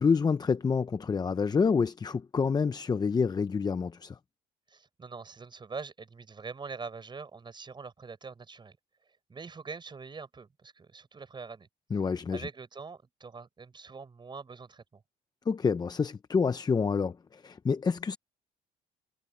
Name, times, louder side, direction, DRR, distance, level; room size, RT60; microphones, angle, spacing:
voice 1, 0.0-4.2 11.9-12.5 15.5-18.2, left 5 dB, 25° left, 0.7 m, -28 dB
voice 2, 4.7-8.8 9.3-12.0 12.3-15.0, right 4 dB, 25° right, 6.6 m, -44 dB
cardioid pair, 110°, 17 cm